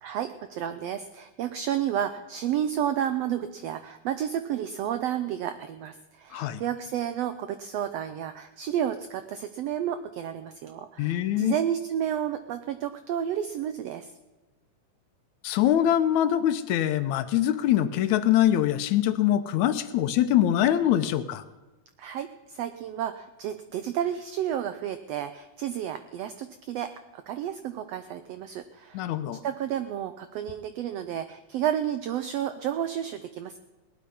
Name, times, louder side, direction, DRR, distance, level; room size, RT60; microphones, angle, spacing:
voice 1, 0.0-14.1 22.0-29.1 29.4-33.6, right 10 dB, 85° right, 10 dB, 1.4 m, -31 dB
voice 2, 6.3-6.6 11.0-11.6 15.4-21.4 28.9-29.4, left 11 dB, 75° left, 11 dB, 1.9 m, -23 dB
18.5 x 11.5 x 5.5 m, 1.1 s
omnidirectional pair, 3.6 m